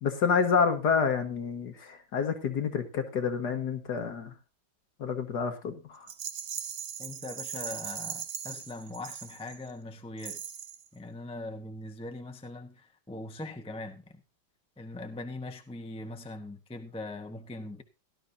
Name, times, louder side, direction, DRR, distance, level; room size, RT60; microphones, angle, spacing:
voice 1, 0.0-4.3 5.0-6.1, left 6 dB, 55° left, 2.0 m, -28 dB
Rattle, 6.1-9.7 10.2-10.9, right 8 dB, 55° right, 0.7 m, -39 dB
voice 2, 7.0-10.4 10.9-14.2 14.8-17.8, left 2 dB, 5° left, 0.6 m, -41 dB
17.5 x 12.0 x 2.7 m
omnidirectional pair, 2.1 m